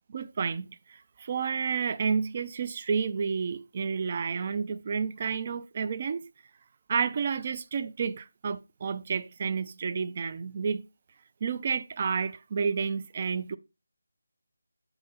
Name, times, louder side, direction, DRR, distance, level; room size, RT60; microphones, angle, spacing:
voice 1, 0.1-6.2 6.9-10.8 11.4-13.6, right 6 dB, 35° right, 0.5 m, -30 dB
8.0 x 2.8 x 5.6 m
figure-of-eight pair, 165°, 0 cm